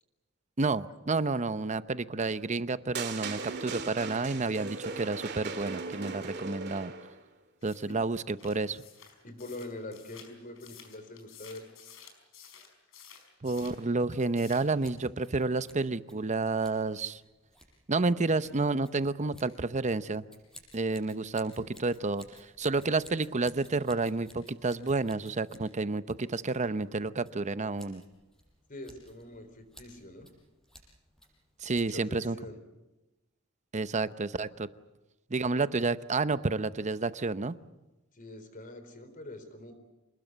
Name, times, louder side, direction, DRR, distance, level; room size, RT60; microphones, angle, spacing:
voice 1, 0.6-6.9 7.6-8.8 13.4-17.2 17.9-20.2 20.7-28.0 31.6-32.4 33.7-34.7 35.3-37.6, right 3 dB, 35° right, 13 dB, 0.8 m, -30 dB
sound 1, 2.9-7.2, right 4 dB, 55° right, 2.6 m, -38 dB
sound 2, 7.6-13.8 14.1-14.8, left 7 dB, 75° left, 4.8 m, -53 dB
voice 2, 9.2-11.7 28.7-30.3 31.6-32.6 38.1-39.7, left 2 dB, 40° left, 9 dB, 4.0 m, -44 dB
Scissors, 14.7-32.2, equal, 5° left, 5.7 m, -58 dB
27.0 x 20.0 x 8.0 m, 1.0 s
head